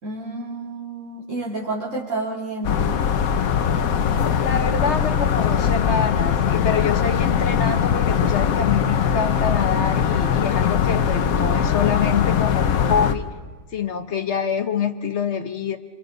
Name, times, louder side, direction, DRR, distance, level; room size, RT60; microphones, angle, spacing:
voice 1, 0.0-3.0 8.1-8.3, right 2 dB, 60° right, -8 dB, 3.5 m, -30 dB
sound 1, 2.6-13.1, left 8 dB, 80° left, 1.3 m, -21 dB
voice 2, 4.2-13.3 13.7-15.8, left 6 dB, 55° left, 8 dB, 1.3 m, -26 dB
27.5 x 26.0 x 4.0 m, 1.3 s
omnidirectional pair, 1.5 m